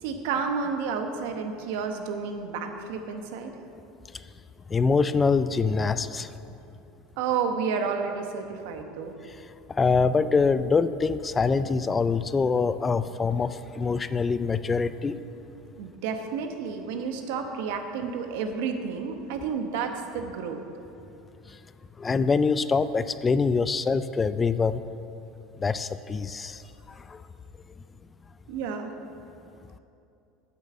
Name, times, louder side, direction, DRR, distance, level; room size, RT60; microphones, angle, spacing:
voice 1, 0.0-3.5 7.2-9.2 15.8-20.6 28.5-28.9, right 5 dB, 75° right, 5 dB, 1.1 m, -31 dB
voice 2, 4.7-6.3 9.3-9.4 9.7-15.1 22.0-24.8 25.6-26.6 26.9-27.2, left 4 dB, 20° left, 13 dB, 0.3 m, -24 dB
8.7 x 7.0 x 7.8 m, 2.7 s
supercardioid pair, 130°, 0 cm